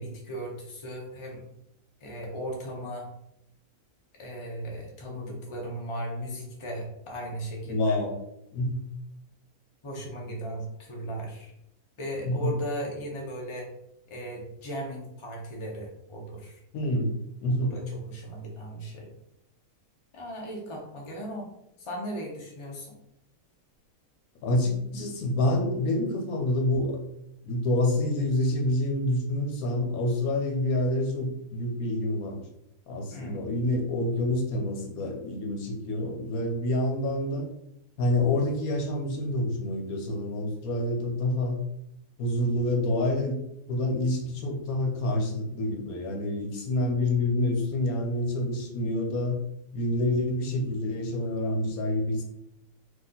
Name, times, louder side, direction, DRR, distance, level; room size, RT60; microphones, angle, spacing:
voice 1, 0.0-1.4 2.0-3.1 4.1-8.0 9.8-11.5 12.0-13.7 14.1-16.6 17.7-19.1 20.1-21.5 21.8-23.0 33.1-33.4, right 1 dB, 25° left, -1 dB, 0.8 m, -37 dB
voice 2, 7.7-8.1 8.5-8.8 12.2-12.5 16.7-17.8 24.4-27.0 27.4-32.4 32.9-37.5 38.0-41.6 42.2-43.4 43.7-49.4 49.7-52.2, left 1 dB, 75° left, 2 dB, 1.2 m, -27 dB
4.2 x 2.8 x 3.8 m, 0.80 s
omnidirectional pair, 1.6 m